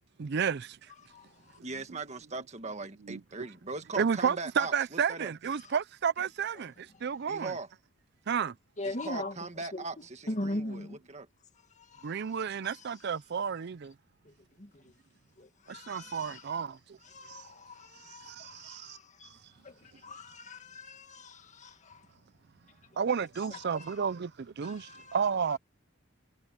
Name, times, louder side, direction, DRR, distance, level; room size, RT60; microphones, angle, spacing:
voice 1, 0.2-0.8 3.1-3.2 4.0-7.5 8.3-8.5 12.0-13.9 15.7-17.0 17.3-17.5 18.1-19.0 23.0-25.6, right 6 dB, 55° right, 0.5 m, -32 dB
voice 2, 1.6-5.3 7.3-7.7 8.8-11.3, right 3 dB, 35° right, 1.7 m, -39 dB
voice 3, 8.8-9.4 9.7-9.8 10.3-11.0 11.7-12.9 14.3-14.9 15.4-16.5 17.0-22.1 22.9-23.0 23.5-24.0 24.6-25.2 25.5-25.6, left 1 dB, 35° left, 2.0 m, -41 dB
head